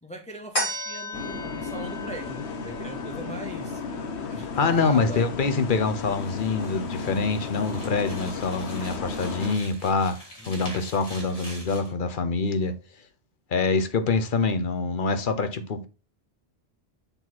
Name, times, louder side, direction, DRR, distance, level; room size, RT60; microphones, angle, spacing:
voice 1, 0.0-3.8 4.3-5.4 10.4-10.6, right 1 dB, 10° left, 0.6 m, -39 dB
sound 1, 0.5-7.3 7.8-7.9, equal, 70° left, 4.0 m, -37 dB
sound 2, 1.1-9.5, left 4 dB, 85° left, 1.2 m, -34 dB
voice 2, 4.4-10.2 10.5-12.7 13.5-15.9, left 4 dB, 55° left, 1.0 m, -25 dB
sound 3, 6.0-11.9, equal, 35° left, 2.6 m, -45 dB
7.0 x 4.2 x 4.2 m
omnidirectional pair, 1.1 m